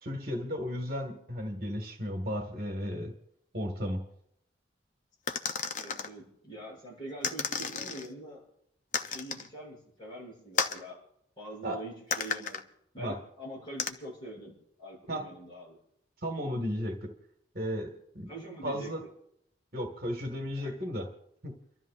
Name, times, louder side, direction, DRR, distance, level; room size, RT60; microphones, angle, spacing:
voice 1, 0.0-3.1 3.5-4.0 11.6-11.8 13.0-13.2 15.1-15.3 16.2-17.1 17.5-18.3 18.6-19.0 19.7-21.1 21.4-21.6, equal, 50° right, 3 dB, 1.8 m, -34 dB
sound 1, 5.3-6.1 7.2-8.1 8.9-9.5 10.6-10.8 12.1-12.6 13.8-13.9, left 6 dB, 40° left, 0.6 m, -32 dB
voice 2, 5.8-8.4 8.9-10.9 11.4-12.6 12.9-14.5 14.8-15.8 18.3-19.1 20.5-20.7, right 1 dB, 25° left, -5 dB, 7.3 m, -44 dB
30.0 x 12.5 x 2.5 m, 0.74 s
head